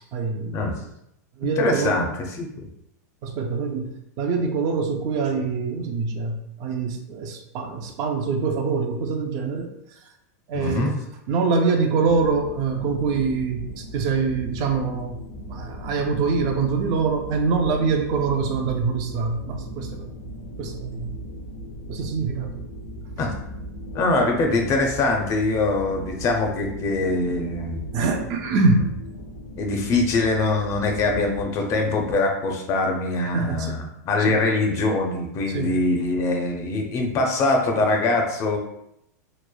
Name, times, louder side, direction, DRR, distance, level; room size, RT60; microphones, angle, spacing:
voice 1, 0.1-0.8 1.4-2.0 3.2-9.7 10.5-11.0 11.3-15.2 15.5-20.1 20.6-21.1 21.9-22.5 27.9-28.9 33.3-33.7 34.2-34.4 35.5-35.8, right 4 dB, 40° right, 4 dB, 0.3 m, -24 dB
voice 2, 1.4-2.7 10.5-10.9 23.2-23.3 23.9-27.8 29.6-38.6, left 2 dB, 35° left, 2 dB, 0.5 m, -23 dB
sound 1, 12.0-31.4, equal, 85° left, 0.5 m, -38 dB
3.1 x 2.0 x 2.2 m, 0.78 s
hypercardioid pair, 125°, 9 cm